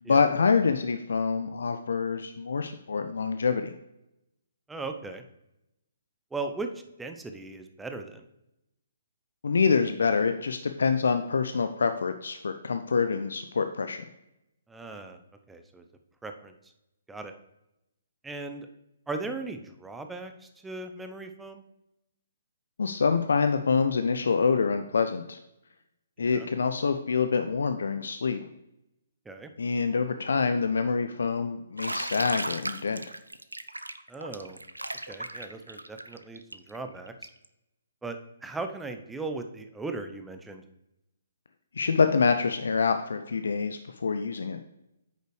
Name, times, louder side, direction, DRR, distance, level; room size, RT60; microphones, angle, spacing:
voice 1, 0.1-3.7 9.4-14.0 22.8-25.4 26.2-28.4 29.6-33.0 41.8-44.6, left 5 dB, 65° left, 8 dB, 0.5 m, -26 dB
voice 2, 4.7-5.2 6.3-6.7 7.0-8.2 14.7-15.2 15.5-15.8 16.2-16.5 17.1-17.3 18.2-18.7 19.1-21.6 26.2-26.5 29.3-29.5 34.1-34.6 35.1-37.1 38.0-40.6, right 3 dB, 5° right, 6 dB, 0.7 m, -38 dB
Bathtub (filling or washing), 31.8-37.5, right 1 dB, 85° right, 0.5 m, -36 dB
9.3 x 6.6 x 3.2 m, 0.87 s
figure-of-eight pair, 130°, 0 cm